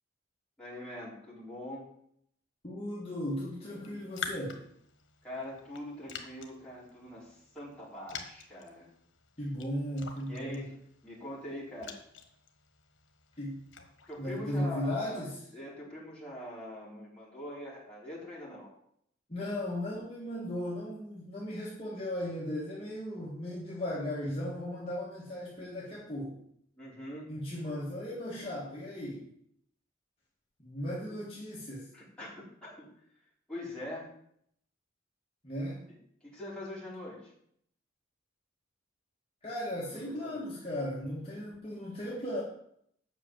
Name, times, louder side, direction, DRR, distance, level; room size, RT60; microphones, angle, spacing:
voice 1, 0.6-1.9 5.2-8.9 10.3-10.8 11.0-12.0 14.1-15.2 15.5-18.7 26.8-27.3 31.9-32.9 33.5-34.1 36.2-37.3 39.8-40.4, left 1 dB, 5° left, -8 dB, 4.1 m, -43 dB
voice 2, 2.6-4.6 9.4-10.6 13.4-13.6 14.2-15.3 19.3-26.4 27.3-29.3 30.6-31.9 35.4-35.8 39.4-42.4, left 1 dB, 30° left, -6 dB, 1.9 m, -36 dB
Raindrop, 3.7-14.4, left 5 dB, 80° left, 1.3 m, -48 dB
8.2 x 6.1 x 7.5 m, 0.71 s
head